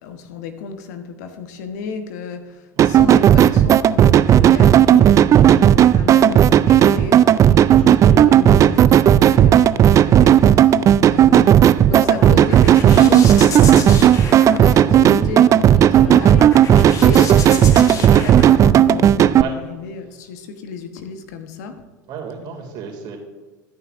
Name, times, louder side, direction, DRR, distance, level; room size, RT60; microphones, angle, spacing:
voice 1, 0.0-10.8 11.1-11.6 11.9-21.8, left 5 dB, 65° left, 7 dB, 1.1 m, -32 dB
sound 1, 2.8-19.4, right 10 dB, 35° right, 0.3 m, -12 dB
sound 2, 4.8-18.5, left 1 dB, 5° left, 1.2 m, -38 dB
voice 2, 6.8-7.7 10.8-11.0 19.3-19.6 22.1-23.2, right 6 dB, 50° right, 2 dB, 2.4 m, -35 dB
sound 3, 11.8-19.3, left 4 dB, 35° left, 1.6 m, -31 dB
13.5 x 9.6 x 2.6 m, 1.3 s
figure-of-eight pair, 75°, 10 cm